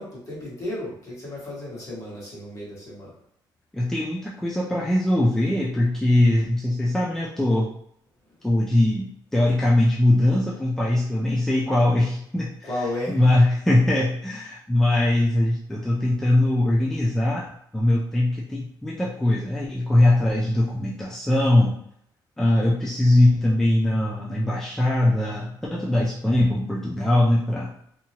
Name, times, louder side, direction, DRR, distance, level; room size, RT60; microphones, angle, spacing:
voice 1, 0.0-3.1 12.6-13.2, left 1 dB, 45° left, -6 dB, 1.4 m, -33 dB
voice 2, 3.7-7.7 8.4-17.5 17.7-21.8 22.4-27.7, left 1 dB, 5° left, -5 dB, 0.3 m, -21 dB
2.8 x 2.3 x 2.8 m, 0.71 s
cardioid pair, 150°, 8 cm